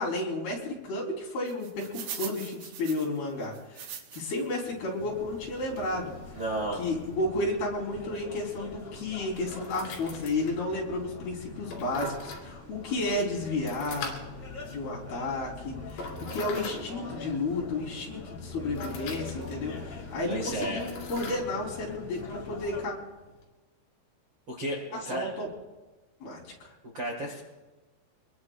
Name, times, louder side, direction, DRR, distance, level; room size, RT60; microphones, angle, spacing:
voice 1, 0.0-6.1 6.8-14.2 14.7-22.9 25.1-25.5 26.2-26.7, left 2 dB, 60° left, -2 dB, 5.5 m, -32 dB
sound 1, 1.5-4.5 4.9-5.0 5.8-5.9 6.4-6.5 6.7-6.9, right 9 dB, 70° right, 2.7 m, -42 dB
sound 2, 5.0-22.8, left 3 dB, 40° left, 2.5 m, -43 dB
sound 3, 5.9-23.4, left 3 dB, 75° left, 5.0 m, -45 dB
voice 2, 6.3-6.8 20.3-20.9 24.5-25.3 26.9-27.4, right 1 dB, 50° right, 0 dB, 1.3 m, -32 dB
25.5 x 21.5 x 2.4 m, 1.2 s
omnidirectional pair, 5.2 m